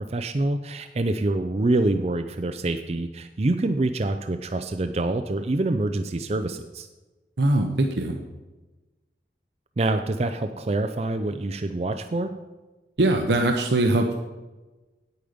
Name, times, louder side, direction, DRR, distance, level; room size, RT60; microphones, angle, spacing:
voice 1, 0.1-6.9 9.8-12.3, right 2 dB, 35° right, 7 dB, 0.4 m, -26 dB
voice 2, 7.4-8.2 13.0-14.1, right 2 dB, 75° right, 3 dB, 0.8 m, -21 dB
9.4 x 8.6 x 5.1 m, 1.2 s
head